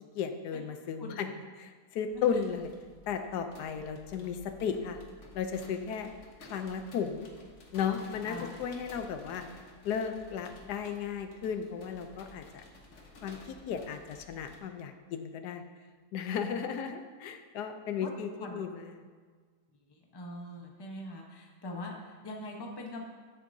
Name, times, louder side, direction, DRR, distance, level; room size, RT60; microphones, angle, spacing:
voice 1, 0.1-1.3 1.6-2.7 3.1-5.0 5.3-6.1 6.4-7.3 7.7-9.4 9.8-12.6 13.2-15.6 16.1-19.0, left 7 dB, 85° left, 7 dB, 1.2 m, -35 dB
sound 1, 2.1-14.6, left 2 dB, 50° left, 1.4 m, -54 dB
voice 2, 20.1-23.0, left 1 dB, 20° left, 0 dB, 0.8 m, -42 dB
10.0 x 8.2 x 2.7 m, 1.6 s
omnidirectional pair, 1.7 m